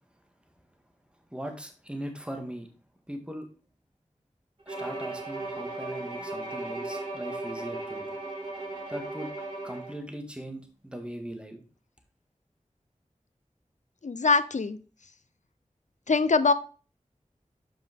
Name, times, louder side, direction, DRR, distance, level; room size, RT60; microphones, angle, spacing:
voice 1, 1.3-2.7 3.1-3.5 4.7-8.1 8.9-9.3 9.6-11.6, equal, 10° right, 4 dB, 1.8 m, -39 dB
Bowed string instrument, 4.7-10.0, right 2 dB, 45° right, 3.9 m, -36 dB
voice 2, 14.0-14.8 16.1-16.5, left 4 dB, 65° left, 14 dB, 0.6 m, -23 dB
7.8 x 5.6 x 3.6 m, 0.37 s
wide cardioid pair, 50°, 13 cm